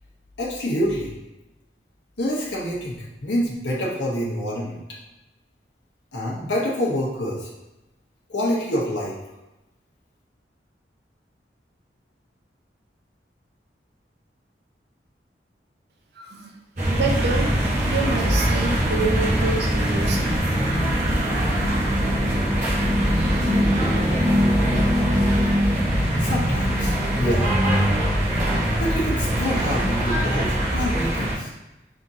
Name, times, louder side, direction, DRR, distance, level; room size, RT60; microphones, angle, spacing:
voice 1, 0.4-1.1 2.2-3.0 3.2-4.8 6.1-7.5 8.3-9.2 26.2-27.5 28.8-31.5, equal, 80° left, -5 dB, 1.0 m, -26 dB
voice 2, 16.2-16.6 16.9-17.6 17.8-20.3, right 3 dB, 65° right, 2 dB, 0.5 m, -27 dB
sound 1, 16.8-31.3, equal, 40° right, 1.1 m, -22 dB
4.2 x 3.6 x 2.7 m, 0.98 s
head